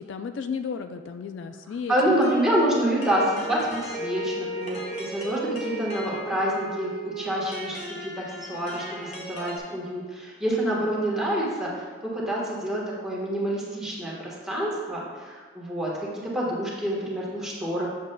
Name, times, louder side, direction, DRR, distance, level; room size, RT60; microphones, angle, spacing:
voice 1, 0.0-2.3, left 6 dB, 65° left, 8 dB, 0.3 m, -34 dB
voice 2, 1.9-17.9, right 1 dB, 5° right, -5 dB, 1.3 m, -27 dB
sound 1, 2.2-9.6, right 1 dB, 35° left, 0.9 m, -35 dB
7.6 x 7.3 x 2.2 m, 1.6 s
head